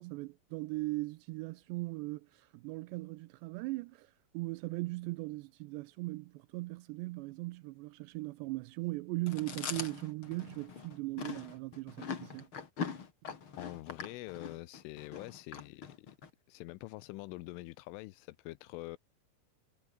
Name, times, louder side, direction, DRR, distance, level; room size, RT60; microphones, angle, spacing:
voice 1, 0.0-12.5, right 22 dB, 85° right, 2.5 m, -39 dB
Chewing mastication, 9.3-16.3, left 6 dB, 35° left, 2.3 m, -42 dB
voice 2, 13.6-16.1 16.5-19.0, left 20 dB, 85° left, 3.4 m, -45 dB
omnidirectional pair, 5.5 m